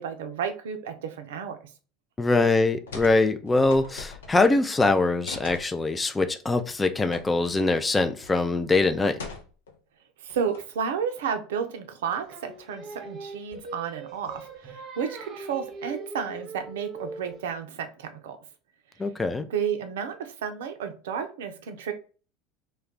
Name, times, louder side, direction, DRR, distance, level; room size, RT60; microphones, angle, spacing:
voice 1, 0.0-1.6 10.2-18.4 19.5-21.9, right 7 dB, 75° right, 0.4 m, -32 dB
voice 2, 2.2-9.2 19.0-19.5, left 3 dB, 15° left, 0.3 m, -23 dB
sound 1, 2.9-3.2 3.5-4.6 5.3-5.7 7.1-7.2 7.6-7.7 8.2-8.5 9.2-9.8 10.3-10.8, left 4 dB, 85° left, 0.6 m, -40 dB
Singing, 12.3-17.5, right 3 dB, 40° right, 0.7 m, -41 dB
2.3 x 2.2 x 3.5 m
hypercardioid pair, 80°, 0 cm